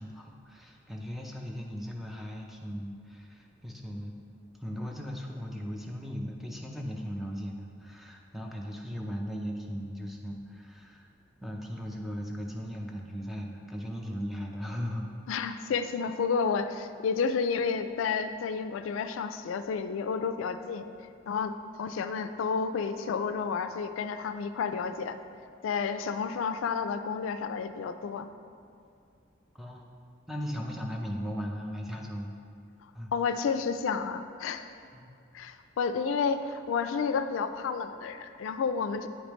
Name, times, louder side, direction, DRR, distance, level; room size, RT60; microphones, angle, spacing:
voice 1, 0.0-4.1 4.6-11.1 11.4-15.2 29.5-29.9 30.3-32.3 32.9-33.1 34.9-35.2, equal, ahead, 0 dB, 0.5 m, -37 dB
voice 2, 15.3-20.9 21.3-25.2 25.6-28.3 33.1-34.7 35.3-39.1, left 5 dB, 90° left, 10 dB, 0.3 m, -31 dB
8.5 x 5.0 x 3.1 m, 2.4 s
head